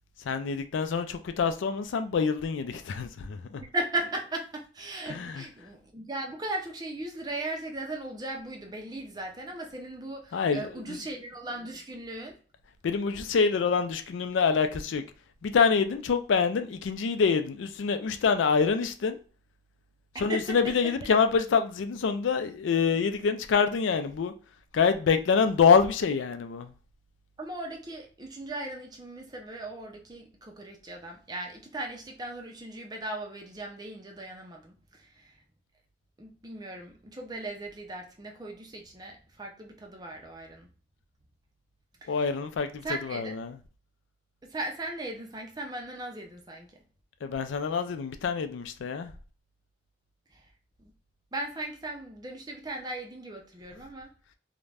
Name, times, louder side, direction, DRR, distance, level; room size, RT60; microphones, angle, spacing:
voice 1, 0.2-3.6 5.1-5.4 10.3-11.0 12.8-15.0 15.4-19.2 20.2-24.3 24.7-26.7 42.1-43.6 47.2-49.1, left 5 dB, 85° left, 0.4 m, -26 dB
voice 2, 3.7-12.4 20.1-20.6 27.4-35.4 36.2-40.7 42.0-42.2 42.8-43.3 44.4-46.8 50.3-50.5 50.8-50.9 51.3-54.1, right 2 dB, 20° right, 0.5 m, -37 dB
2.4 x 2.1 x 3.2 m
head